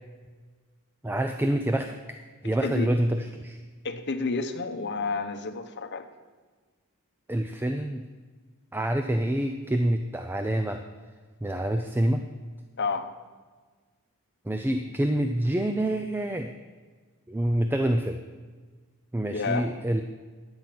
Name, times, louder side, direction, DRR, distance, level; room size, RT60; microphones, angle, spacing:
voice 1, 1.0-3.6 7.3-8.1 8.7-10.8 11.4-12.2 14.5-16.5 17.3-18.2 19.1-20.0, right 1 dB, 10° right, 6 dB, 0.4 m, -27 dB
voice 2, 2.4-2.9 3.8-6.1 12.8-13.1 19.3-19.7, left 4 dB, 50° left, 7 dB, 0.8 m, -30 dB
10.5 x 7.8 x 5.9 m, 1.4 s
head